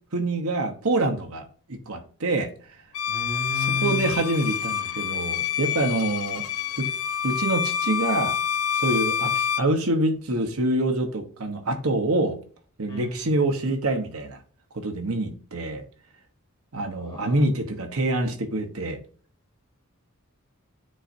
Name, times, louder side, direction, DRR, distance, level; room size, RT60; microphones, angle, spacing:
voice 1, 0.1-2.5 3.6-6.4 6.8-6.9 7.2-8.3 8.8-12.4 12.8-14.4 14.7-15.8 16.7-19.0, right 2 dB, 80° right, 4 dB, 1.1 m, -26 dB
Bowed string instrument, 2.9-9.7, left 8 dB, 75° left, 0.5 m, -27 dB
voice 2, 3.1-4.1 12.9-13.3 16.9-17.4, left 3 dB, 20° left, 1 dB, 2.1 m, -33 dB
9.7 x 3.9 x 2.7 m, 0.43 s
head